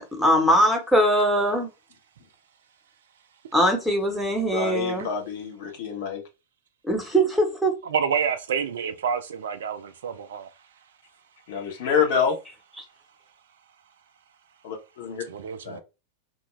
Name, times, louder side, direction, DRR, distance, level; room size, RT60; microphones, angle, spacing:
voice 1, 0.0-1.7 3.5-5.1 6.9-7.7, equal, ahead, 0.9 m, -21 dB
voice 2, 4.5-6.2 11.5-12.4 14.6-15.2 15.6-15.8, left 6 dB, 55° left, 0.7 m, -27 dB
voice 3, 7.8-10.5 15.3-15.8, right 7 dB, 60° right, 0.3 m, -28 dB
2.3 x 2.1 x 3.1 m
figure-of-eight pair, 90°, 0 cm